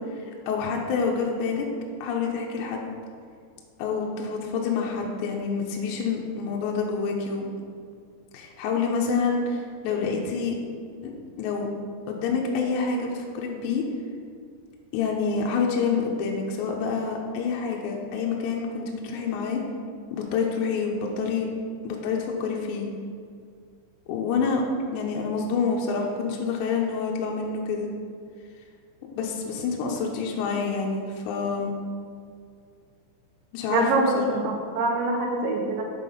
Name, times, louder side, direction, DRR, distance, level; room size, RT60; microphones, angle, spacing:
voice 1, 0.5-1.7 2.0-2.9 3.8-7.5 8.3-10.5 11.0-11.1 11.4-11.7 12.1-13.8 14.9-19.6 20.1-21.5 21.8-22.9 24.1-24.6 24.9-27.9 29.2-31.7 33.5-34.4, left 5 dB, 80° left, -1 dB, 2.7 m, -27 dB
voice 2, 33.7-35.8, right 2 dB, 80° right, 1 dB, 2.9 m, -24 dB
8.3 x 5.9 x 5.5 m, 2.2 s
omnidirectional pair, 5.9 m